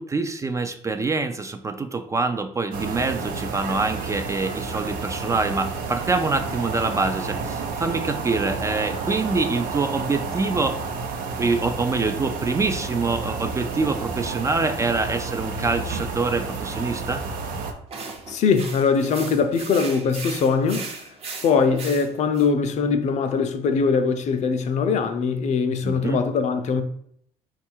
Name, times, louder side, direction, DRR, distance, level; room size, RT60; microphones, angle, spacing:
voice 1, 0.0-10.8 11.3-17.2 25.8-26.2, right 3 dB, 20° right, 0.3 m, -25 dB
sound 1, 2.7-17.7, right 4 dB, 75° right, 0.6 m, -30 dB
sound 2, 17.9-22.5, right 4 dB, 45° right, 0.8 m, -37 dB
voice 2, 18.3-20.9 21.4-26.8, left 5 dB, 50° left, 0.5 m, -22 dB
4.7 x 2.4 x 4.4 m
cardioid pair, 100°, 15 cm